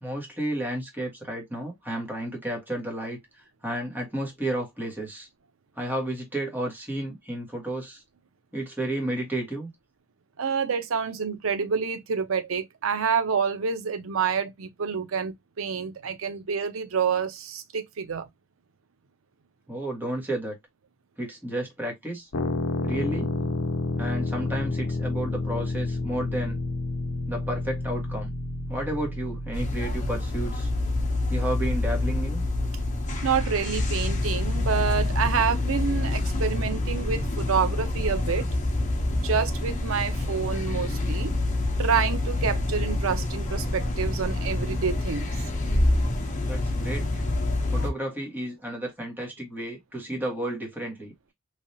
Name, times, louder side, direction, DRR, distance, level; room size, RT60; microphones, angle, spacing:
voice 1, 0.0-3.2 3.6-5.3 5.8-8.0 8.5-9.7 19.7-20.6 21.2-22.3 22.8-23.3 24.0-26.6 27.3-28.3 28.7-30.7 31.3-32.4 46.4-47.2 47.7-51.1, right 1 dB, 10° right, 1.4 m, -32 dB
voice 2, 10.4-18.3 33.2-38.5 39.1-41.3 41.8-45.3, right 6 dB, 80° right, 0.6 m, -28 dB
sound 1, 22.3-33.9, left 2 dB, 80° left, 0.7 m, -31 dB
sound 2, 29.5-47.9, left 2 dB, 40° left, 0.8 m, -27 dB
3.2 x 2.7 x 2.7 m
head